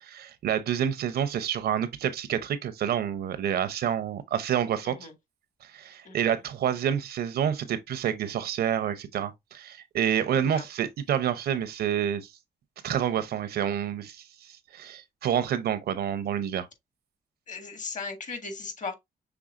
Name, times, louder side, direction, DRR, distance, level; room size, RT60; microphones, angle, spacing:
voice 1, 0.0-5.0 5.6-12.2 12.8-14.2 14.7-16.7, right 9 dB, 80° right, 0.7 m, -28 dB
voice 2, 6.0-6.4 10.3-10.7 17.5-19.0, left 4 dB, 50° left, 1.7 m, -37 dB
6.1 x 3.4 x 2.5 m
cardioid pair, 95°, 16 cm